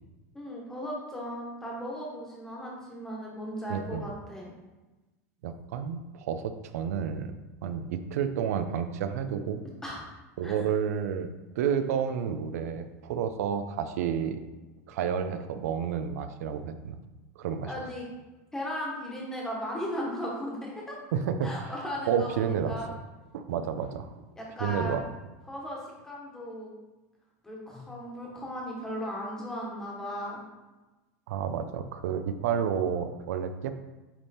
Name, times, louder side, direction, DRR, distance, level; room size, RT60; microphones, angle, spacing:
voice 1, 0.3-4.5 9.8-10.0 10.4-10.5 17.6-18.1 18.5-21.0 21.4-22.9 24.4-25.1 25.5-26.7 27.4-30.4, equal, 5° left, -3 dB, 1.3 m, -36 dB
voice 2, 3.7-4.1 5.4-7.3 7.6-9.6 10.4-11.3 11.6-14.4 14.9-17.0 17.4-17.7 21.1-21.7 22.1-22.8 23.3-24.2 24.6-25.0 31.3-33.7, right 7 dB, 85° right, 9 dB, 0.6 m, -30 dB
8.7 x 3.6 x 4.2 m, 1.1 s
supercardioid pair, 170°, 8 cm